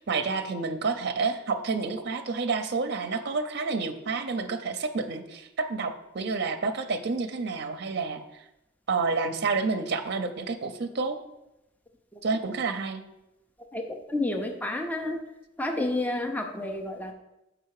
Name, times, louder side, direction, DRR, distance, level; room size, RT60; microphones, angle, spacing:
voice 1, 0.0-8.2 8.9-11.2 12.2-13.0, right 4 dB, 55° right, 7 dB, 0.5 m, -29 dB
voice 2, 13.7-15.2 15.6-17.1, left 2 dB, 10° left, 3 dB, 0.5 m, -30 dB
6.6 x 5.0 x 4.7 m, 0.91 s
head